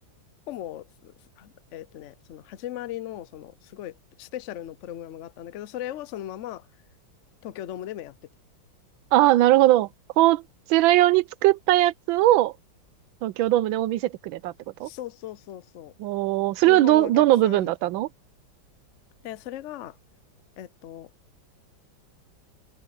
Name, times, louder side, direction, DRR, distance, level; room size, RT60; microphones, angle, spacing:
voice 1, 0.5-6.7 7.4-8.2 14.8-15.9 16.7-17.7 19.2-20.0 20.6-21.1, left 13 dB, 75° left, 0.6 m, -38 dB
voice 2, 9.1-9.9 10.2-10.4 10.7-12.5 13.2-14.5 14.8-14.9 16.0-18.1, right 15 dB, 85° right, 1.4 m, -20 dB
open air
omnidirectional pair, 2.1 m